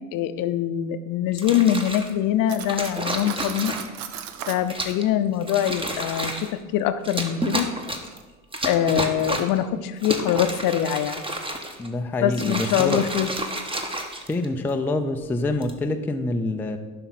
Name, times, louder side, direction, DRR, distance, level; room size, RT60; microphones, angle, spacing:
voice 1, 0.1-3.7 4.5-7.7 8.6-11.2 12.2-13.3, left 10 dB, 45° left, 11 dB, 0.7 m, -23 dB
sound 1, 1.3-2.1 2.7-4.0 4.7-5.1 5.4-6.5 7.0-8.2 8.5-9.6 10.0-11.9 12.3-14.7 15.4-15.8, right 1 dB, 10° right, 1.1 m, -30 dB
Cutlery silverware, 2.5-4.7, right 9 dB, 70° right, 0.8 m, -36 dB
voice 2, 11.8-13.1 14.3-16.8, left 2 dB, 5° left, 5 dB, 0.4 m, -26 dB
11.0 x 5.8 x 4.2 m, 1.2 s
hypercardioid pair, 70°, 45 cm